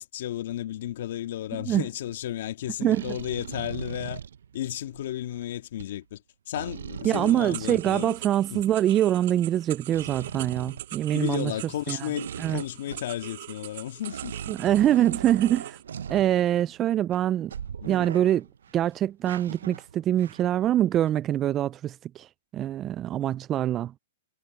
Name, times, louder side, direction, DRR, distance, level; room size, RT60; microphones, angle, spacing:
voice 1, 0.0-4.2 4.5-6.2 6.5-8.1 8.5-8.6 11.1-14.4 17.8-18.1, left 12 dB, 60° left, 2.0 m, -33 dB
sound 1, 1.8-2.1 2.9-5.4 5.8-5.9 6.6-8.8 9.9-11.5 12.2-13.3 13.6-13.7 14.0-16.8 17.1-17.2 17.5-18.8 19.3-20.7 21.0-21.1, right 8 dB, 80° right, 0.7 m, -39 dB
voice 2, 7.0-11.5 11.9-12.0 12.4-12.6 14.5-15.8 16.1-17.5 17.9-18.5 18.7-22.3 22.5-23.9, right 12 dB, 25° right, 0.3 m, -24 dB
sound 2, 7.1-15.8, right 14 dB, 55° right, 1.8 m, -42 dB
hypercardioid pair, 140°, 0 cm